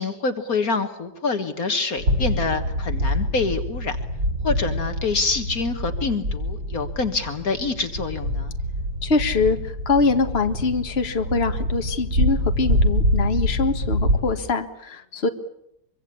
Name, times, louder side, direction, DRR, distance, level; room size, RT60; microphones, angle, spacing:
voice 1, 0.0-4.0 4.4-8.5, left 4 dB, 60° left, 8 dB, 1.9 m, -26 dB
sound 1, 2.0-14.2, equal, 90° right, 7.5 m, -25 dB
voice 2, 9.0-15.3, left 4 dB, 40° left, 6 dB, 1.8 m, -23 dB
24.0 x 24.0 x 8.4 m, 0.76 s
omnidirectional pair, 1.8 m